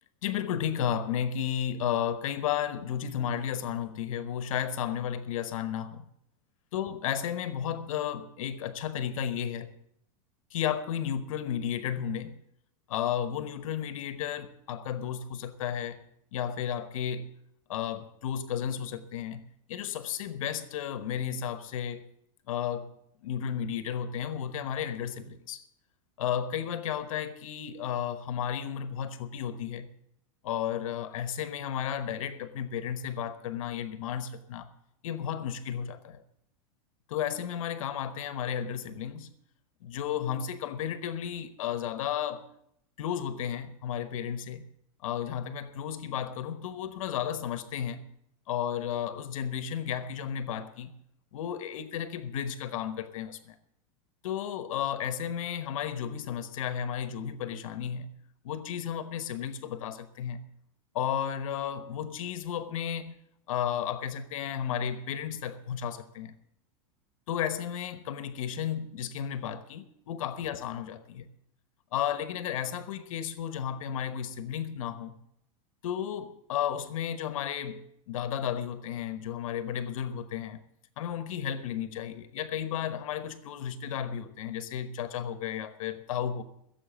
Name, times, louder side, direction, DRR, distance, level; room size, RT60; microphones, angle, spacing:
voice 1, 0.2-6.0 6.7-9.8 10.5-12.4 12.9-16.0 16.3-17.3 17.7-22.1 22.5-22.9 23.2-25.6 26.2-29.9 30.4-34.7 35.0-36.2 37.1-39.3 39.8-42.4 43.0-44.7 45.0-48.0 48.5-50.9 51.3-53.6 54.2-58.1 58.4-60.4 60.9-63.2 63.5-66.3 67.3-71.3 71.9-75.2 75.8-80.6 81.0-86.4, left 9 dB, 80° left, 1.1 m, -33 dB
15.5 x 7.4 x 7.3 m
supercardioid pair, 160°, 17 cm